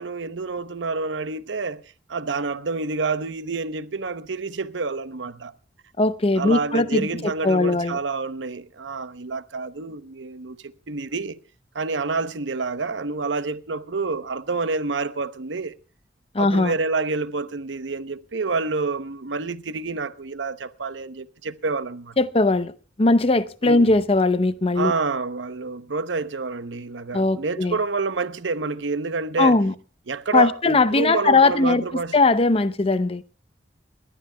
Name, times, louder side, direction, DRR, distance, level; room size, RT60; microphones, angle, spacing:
voice 1, 0.0-1.8 2.1-5.5 6.4-11.4 11.7-15.7 16.4-22.2 23.6-24.0 24.8-29.6 30.1-32.1, right 4 dB, 90° right, 0.9 m, -28 dB
voice 2, 6.0-8.0 16.3-16.8 22.2-22.7 23.0-24.9 27.1-27.8 29.4-29.7 30.3-33.2, left 3 dB, 35° left, 0.7 m, -20 dB
29.5 x 12.5 x 2.3 m
head